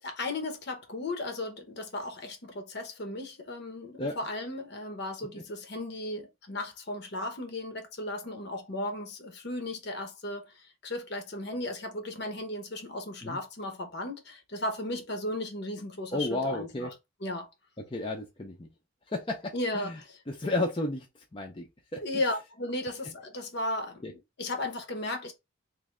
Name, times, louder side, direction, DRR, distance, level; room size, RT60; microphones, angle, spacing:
voice 1, 0.0-16.9 17.2-17.5 19.5-20.2 22.0-25.3, left 1 dB, 55° left, 0.8 m, -35 dB
voice 2, 16.1-16.9 17.9-18.7 19.1-20.0 20.3-21.1 21.3-22.0 24.0-24.1, left 2 dB, 25° left, 0.6 m, -32 dB
3.1 x 2.6 x 3.6 m
head